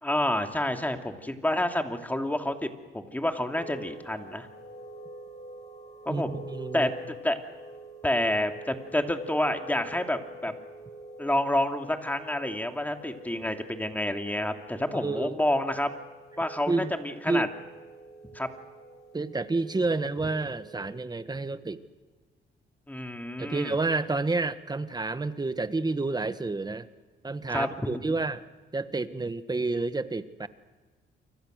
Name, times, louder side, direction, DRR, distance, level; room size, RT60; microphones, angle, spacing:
voice 1, 0.0-4.5 6.1-6.4 6.7-7.5 8.0-10.5 11.2-15.9 16.4-17.5 18.3-18.5 22.9-23.8 27.5-27.9, left 1 dB, 10° left, 5 dB, 2.7 m, -29 dB
sound 1, 3.5-21.0, right 1 dB, 35° left, 7.2 m, -46 dB
voice 2, 6.1-6.9 14.9-15.4 16.7-16.9 17.3-17.4 19.1-21.8 23.4-26.9 27.2-28.4 28.7-30.5, right 3 dB, 20° right, 12 dB, 1.4 m, -29 dB
29.5 x 24.5 x 6.5 m, 1.3 s
cardioid pair, 90°, 20 cm